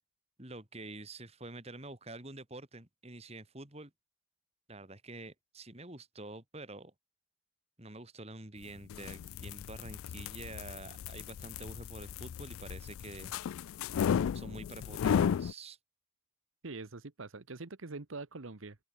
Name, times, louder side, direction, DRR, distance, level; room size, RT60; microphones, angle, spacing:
voice 1, 0.4-3.9 4.7-6.9 7.8-13.7 14.3-15.8, right 2 dB, 30° right, 2.5 m, -47 dB
sound 1, 8.8-15.5, left 8 dB, 85° left, 0.3 m, -34 dB
voice 2, 16.6-18.8, right 3 dB, 75° right, 1.2 m, -44 dB
head